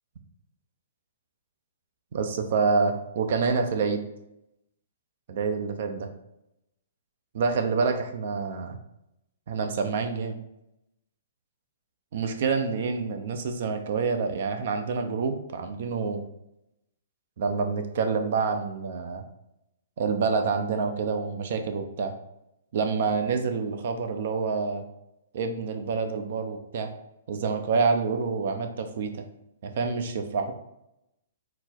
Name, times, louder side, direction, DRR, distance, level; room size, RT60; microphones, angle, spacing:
voice 1, 2.1-4.0 5.3-6.1 7.3-8.8 9.5-10.4 12.1-16.2 17.4-19.2 20.0-22.1 22.7-24.8 25.3-26.9 27.3-29.2 29.6-30.5, right 4 dB, 60° right, 6 dB, 0.6 m, -27 dB
4.2 x 2.1 x 4.3 m, 0.84 s
hypercardioid pair, 130°, 0 cm